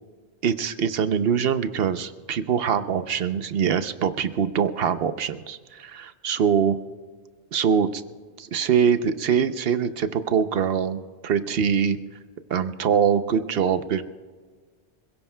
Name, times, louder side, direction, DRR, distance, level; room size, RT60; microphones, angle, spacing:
voice 1, 0.4-6.8 7.5-8.0 8.4-12.0 12.5-14.0, right 7 dB, 65° right, 11 dB, 0.9 m, -23 dB
26.5 x 16.5 x 2.2 m, 1.5 s
omnidirectional pair, 1.1 m